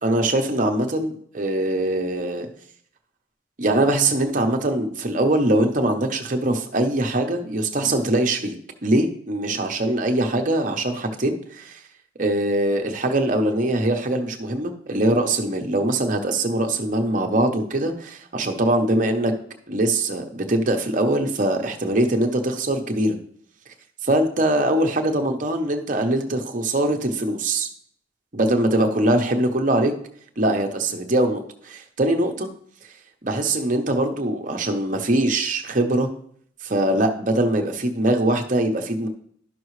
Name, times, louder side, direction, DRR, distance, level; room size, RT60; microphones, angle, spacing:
voice 1, 0.0-2.5 3.6-8.5 8.8-11.8 12.2-19.3 19.7-23.2 24.0-27.7 28.3-29.9 30.4-32.5 33.2-36.1 36.6-39.1, right 1 dB, 40° right, 3 dB, 0.9 m, -22 dB
11.5 x 6.2 x 3.2 m, 0.62 s
head